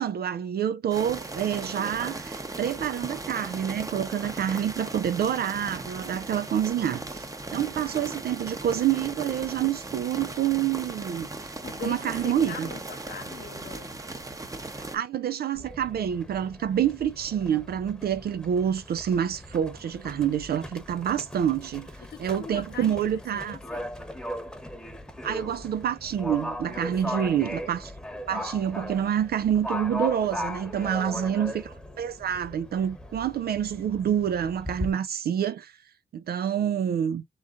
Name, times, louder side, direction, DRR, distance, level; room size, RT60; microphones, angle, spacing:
voice 1, 0.0-7.2 7.5-11.3 11.8-12.7 14.7-23.6 25.2-27.9 28.3-35.8 36.1-37.2, right 9 dB, 60° right, 0.4 m, -27 dB
sound 1, 0.9-15.0, right 2 dB, 20° right, 0.8 m, -37 dB
voice 2, 11.6-13.9 20.1-20.3 22.0-23.9 26.7-27.3 30.8-31.4, left 6 dB, 65° left, 1.1 m, -42 dB
Livestock farm animals working animals, 15.5-34.9, equal, 5° left, 1.0 m, -38 dB
3.8 x 3.7 x 3.7 m
cardioid pair, 75°, 18 cm